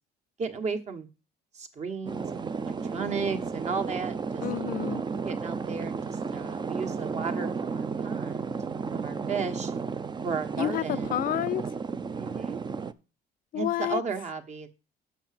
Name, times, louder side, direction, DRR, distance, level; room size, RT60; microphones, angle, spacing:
voice 1, 0.4-1.1 1.5-4.4 5.2-8.6 8.9-9.7 10.2-11.2 12.1-12.6 13.5-14.7, right 5 dB, 40° right, 1.4 m, -34 dB
sound 1, 2.1-12.9, right 5 dB, 25° right, 0.6 m, -33 dB
voice 2, 4.4-5.0 10.6-11.6 13.5-14.0, left 12 dB, 55° left, 0.4 m, -29 dB
6.8 x 5.9 x 7.5 m
cardioid pair, 110°, 17 cm